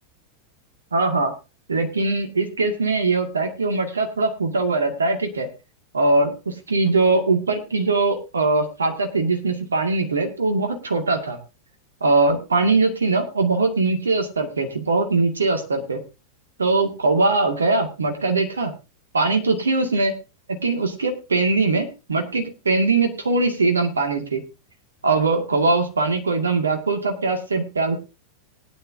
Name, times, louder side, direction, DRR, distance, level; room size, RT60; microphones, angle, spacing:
voice 1, 0.9-1.3 1.7-5.5 5.9-11.4 12.0-16.0 16.6-18.7 19.1-20.1 20.6-24.4 25.0-28.0, right 3 dB, 75° right, 4 dB, 2.2 m, -21 dB
19.0 x 10.0 x 2.8 m, 0.29 s
figure-of-eight pair, 90°, 0 cm